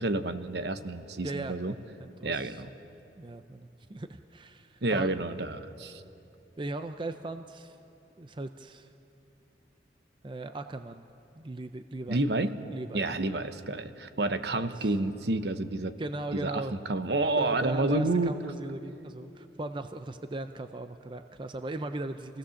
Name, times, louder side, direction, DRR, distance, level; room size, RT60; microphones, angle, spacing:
voice 1, 0.0-1.7 2.2-2.7 4.8-6.0 12.1-12.5 12.9-15.9 16.3-16.6 16.9-18.3, right 2 dB, 60° right, 10 dB, 1.0 m, -29 dB
voice 2, 1.2-1.6 2.0-2.6 3.2-5.1 6.6-7.8 8.2-8.9 10.2-11.0 11.4-12.2 12.7-13.2 14.5-14.9 16.0-16.8 17.4-22.4, right 2 dB, 25° right, 8 dB, 0.5 m, -38 dB
27.0 x 17.0 x 7.1 m, 2.8 s
head